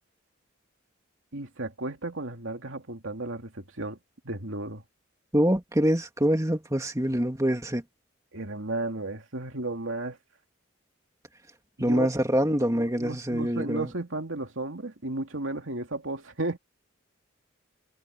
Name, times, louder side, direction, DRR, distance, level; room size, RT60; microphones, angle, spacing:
voice 1, 1.3-4.0 4.2-4.8 8.3-10.2 11.8-12.1 12.4-16.6, right 2 dB, 75° right, 2.5 m, -34 dB
voice 2, 5.3-7.8 11.8-13.9, equal, 15° right, 2.5 m, -25 dB
head